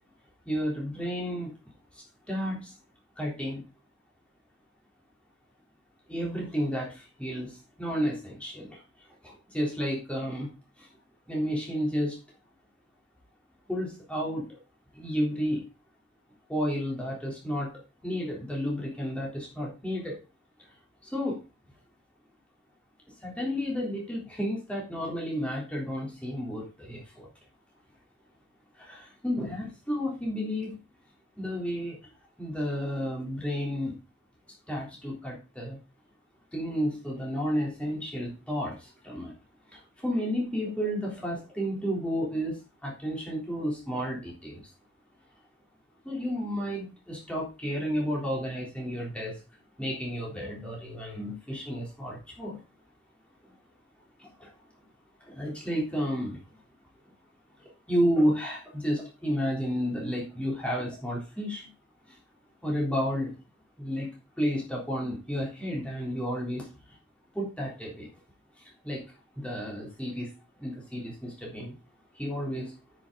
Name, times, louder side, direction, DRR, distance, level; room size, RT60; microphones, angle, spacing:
voice 1, 0.5-1.5 2.3-2.7 3.2-3.6 6.1-8.8 9.2-10.5 10.8-10.9 11.3-12.2 13.7-14.6 14.9-15.7 16.5-17.7 18.0-20.2 21.0-21.4 23.2-27.3 28.8-30.8 31.4-32.0 32.4-34.0 34.7-35.8 36.5-39.3 39.7-44.6 46.0-49.4 49.8-52.6 54.2-54.5 55.2-56.4 57.9-61.7 62.1-62.2 62.6-63.3 63.8-64.1 64.4-66.7 67.3-68.1 68.8-69.0 69.4-70.3 70.6-71.8 72.2-72.7, equal, 5° left, -3 dB, 3.6 m, -31 dB
9.9 x 6.4 x 4.0 m, 0.30 s
head